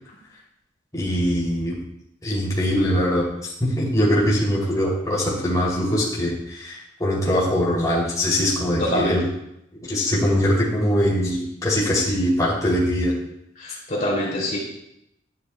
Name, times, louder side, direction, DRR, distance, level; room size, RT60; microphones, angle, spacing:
voice 1, 0.9-1.8 2.2-9.2 9.8-13.1, equal, 20° left, -6 dB, 3.0 m, -22 dB
voice 2, 8.8-9.2 13.6-14.6, equal, 45° left, -5 dB, 3.0 m, -24 dB
11.0 x 11.0 x 2.3 m, 0.79 s
head